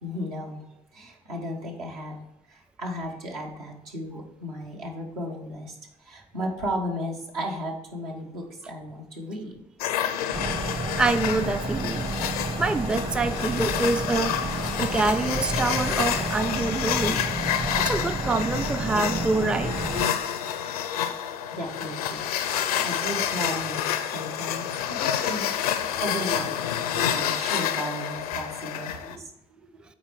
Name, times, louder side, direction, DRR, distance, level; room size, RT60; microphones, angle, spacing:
voice 1, 0.0-9.6 17.2-17.9 19.0-19.2 19.8-20.2 20.5-20.6 21.1-25.5 25.9-29.7, equal, 75° right, 0 dB, 1.2 m, -35 dB
sound 1, 9.8-29.2, left 10 dB, 75° left, 0.5 m, -29 dB
sound 2, 10.3-20.1, right 3 dB, 25° right, 0.8 m, -31 dB
voice 2, 11.0-12.1 12.6-14.4 14.8-17.2 17.8-19.7, right 3 dB, 5° right, 13 dB, 0.4 m, -26 dB
8.7 x 4.2 x 4.6 m, 0.84 s
figure-of-eight pair, 50°, 19 cm